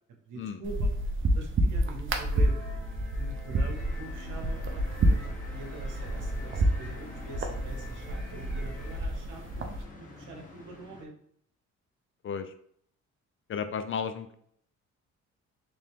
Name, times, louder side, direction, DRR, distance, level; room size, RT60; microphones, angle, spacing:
voice 1, 0.3-0.9 1.3-11.1, right 3 dB, 85° right, 3 dB, 1.0 m, -45 dB
sound 1, 0.6-9.8, right 1 dB, 40° right, 0.6 m, -29 dB
sound 2, 2.3-9.0, left 1 dB, ahead, 0.9 m, -49 dB
sound 3, 3.7-11.0, left 2 dB, 25° left, 1.1 m, -49 dB
voice 2, 13.5-14.3, left 6 dB, 45° left, 9 dB, 0.4 m, -33 dB
3.4 x 2.8 x 3.5 m, 0.66 s
cardioid pair, 90°, 30 cm